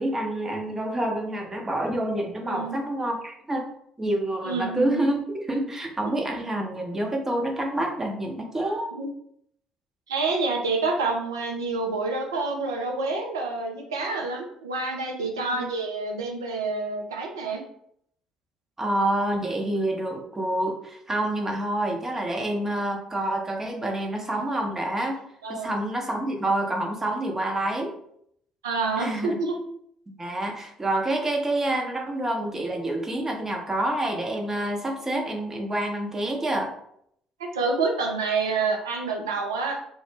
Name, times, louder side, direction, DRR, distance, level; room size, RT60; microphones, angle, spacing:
voice 1, 0.0-3.7 4.0-5.2 5.5-8.9 15.5-15.6 18.8-25.2 25.5-27.9 29.0-29.4 30.1-36.7, right 1 dB, 20° right, 1 dB, 0.6 m, -27 dB
voice 2, 2.5-2.8 4.4-5.0 6.1-6.2 8.9-9.1 10.1-17.6 25.4-25.7 28.6-29.6 37.4-39.8, right 3 dB, 80° right, 1 dB, 0.4 m, -28 dB
2.2 x 2.0 x 3.1 m, 0.71 s
figure-of-eight pair, 50°, 2 cm